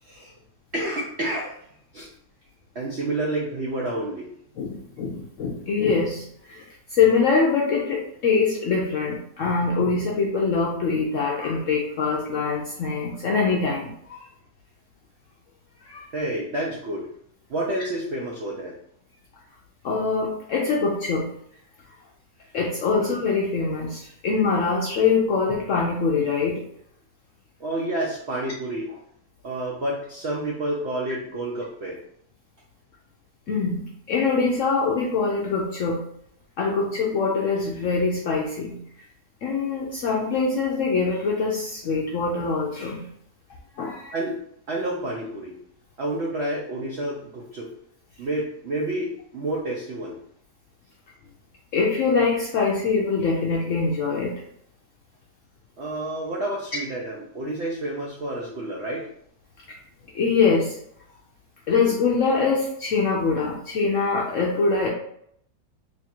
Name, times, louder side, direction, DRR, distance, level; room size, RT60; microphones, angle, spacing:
voice 1, 0.0-0.3 0.7-1.7 1.9-2.1 2.7-4.3 16.1-17.1 17.5-18.8 22.9-23.0 27.6-29.0 29.4-32.0 44.1-44.4 44.7-45.6 46.0-47.7 48.2-50.2 55.8-59.1, right 1 dB, 70° right, -3 dB, 0.6 m, -29 dB
voice 2, 4.6-6.6 6.9-14.3 15.9-16.1 19.8-21.3 22.5-26.6 33.5-36.0 36.6-38.8 39.4-43.0 43.8-44.1 51.7-54.4 60.1-60.8 61.7-64.9, left 4 dB, 70° left, -2 dB, 0.7 m, -23 dB
3.2 x 2.5 x 4.3 m, 0.69 s
omnidirectional pair, 1.9 m